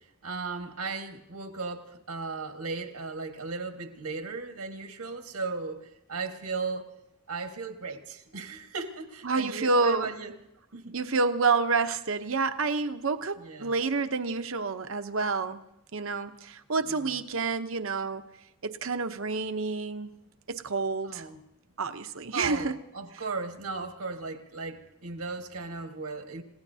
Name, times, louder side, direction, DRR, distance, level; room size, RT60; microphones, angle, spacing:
voice 1, 0.2-6.9 7.3-10.3 10.7-11.0 13.4-13.8 16.8-17.1 21.0-21.4 22.3-26.4, right 4 dB, 85° right, 4 dB, 1.6 m, -36 dB
voice 2, 9.2-10.1 10.9-15.6 15.9-18.2 18.6-20.1 20.5-21.2 21.8-22.8, right 4 dB, 60° right, 9 dB, 0.8 m, -28 dB
30.0 x 17.0 x 2.8 m, 0.85 s
head